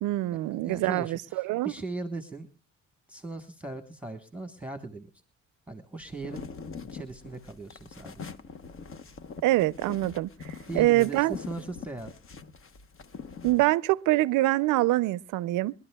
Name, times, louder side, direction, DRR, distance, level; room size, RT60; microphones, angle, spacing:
voice 1, 0.0-1.7 9.4-11.3 13.4-15.7, right 17 dB, 85° right, 0.5 m, -25 dB
voice 2, 0.6-2.5 3.1-5.1 5.7-6.5 6.9-8.3 10.7-12.1, right 3 dB, 5° right, 1.2 m, -39 dB
sound 1, 6.0-13.7, left 5 dB, 45° left, 1.0 m, -43 dB
25.5 x 11.5 x 2.3 m
cardioid pair, 90°, 30 cm